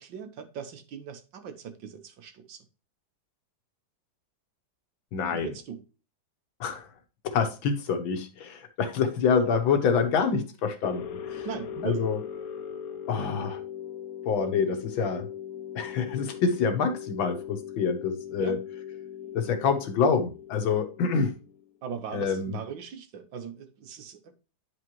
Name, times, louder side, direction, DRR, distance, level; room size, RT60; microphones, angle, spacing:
voice 1, 0.0-2.6 5.3-5.8 11.4-12.1 18.4-18.6 21.8-24.3, right 7 dB, 75° right, 1.7 m, -39 dB
voice 2, 5.1-5.5 6.6-6.9 7.2-11.5 11.8-12.2 13.1-13.6 14.2-15.3 15.8-18.6 19.3-21.4 22.1-22.6, left 5 dB, 80° left, 1.9 m, -26 dB
sound 1, 10.8-21.7, left 9 dB, 60° left, 1.1 m, -40 dB
9.7 x 4.9 x 3.0 m
omnidirectional pair, 2.1 m